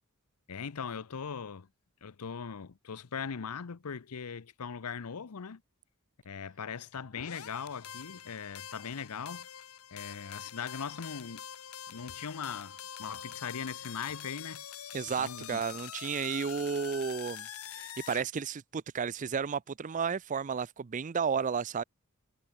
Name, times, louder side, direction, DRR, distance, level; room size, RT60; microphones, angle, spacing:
voice 1, 0.5-1.7 2.0-5.6 6.2-9.5 9.9-11.4 11.9-14.6 15.2-15.6, left 6 dB, 90° left, 0.7 m, -40 dB
sound 1, 7.2-18.3, left 9 dB, 75° left, 1.4 m, -45 dB
voice 2, 14.9-17.5 17.7-21.8, right 6 dB, 35° right, 0.4 m, -32 dB
head